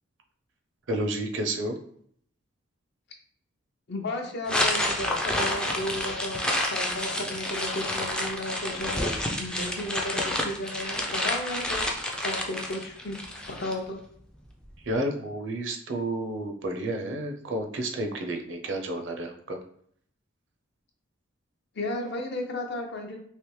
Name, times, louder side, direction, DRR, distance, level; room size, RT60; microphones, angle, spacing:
voice 1, 0.9-1.8 14.8-19.6, right 1 dB, 60° right, 4 dB, 0.5 m, -31 dB
voice 2, 3.9-6.4 6.7-9.1 9.4-13.2 13.5-14.0 21.8-23.2, left 1 dB, 55° left, 3 dB, 0.6 m, -34 dB
sound 1, 4.5-13.7, left 1 dB, 5° left, 0.3 m, -29 dB
3.3 x 2.9 x 3.1 m, 0.65 s
head